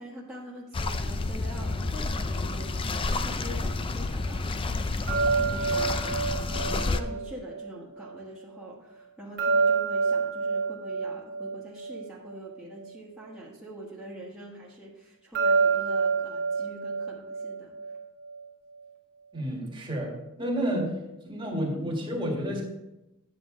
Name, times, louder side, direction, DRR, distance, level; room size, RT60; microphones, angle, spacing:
voice 1, 0.0-17.8, right 1 dB, 5° right, -7 dB, 1.5 m, -44 dB
sound 1, 0.7-7.0, left 3 dB, 25° left, 0.4 m, -30 dB
sound 2, 5.1-8.2 9.4-12.9 15.4-18.4, right 4 dB, 50° right, 1.6 m, -28 dB
voice 2, 19.3-20.1 20.4-20.9 21.2-22.6, equal, 20° right, -1 dB, 1.7 m, -30 dB
9.5 x 7.2 x 3.7 m, 0.93 s
head